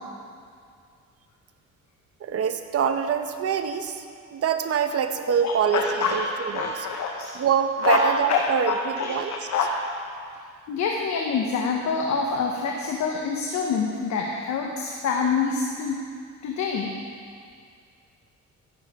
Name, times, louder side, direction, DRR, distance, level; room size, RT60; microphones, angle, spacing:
voice 1, 2.2-4.0 4.3-5.8 6.1-6.2 6.5-6.7 7.3-9.3, right 7 dB, 50° right, 8 dB, 0.9 m, -24 dB
voice 2, 5.4-7.3 7.8-9.7 10.7-16.0 16.4-16.9, left 4 dB, 65° left, 0 dB, 1.1 m, -26 dB
14.5 x 10.0 x 3.7 m, 2.2 s
cardioid pair, 90°, 30 cm